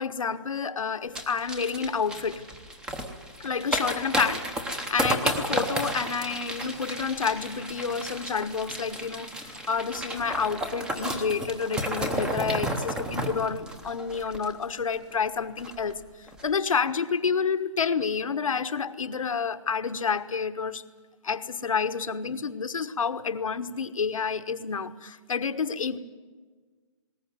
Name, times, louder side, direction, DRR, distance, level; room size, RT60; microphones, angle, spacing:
voice 1, 0.0-2.4 3.4-4.5 4.9-9.3 9.7-16.0 16.4-20.8 21.2-26.0, left 5 dB, 80° left, 10 dB, 1.3 m, -29 dB
sound 1, 1.1-14.9 15.2-15.3 15.6-15.9 16.3-16.4, right 1 dB, 5° right, 0.9 m, -32 dB
20.0 x 18.5 x 9.5 m, 1.5 s
hypercardioid pair, 165°, 17 cm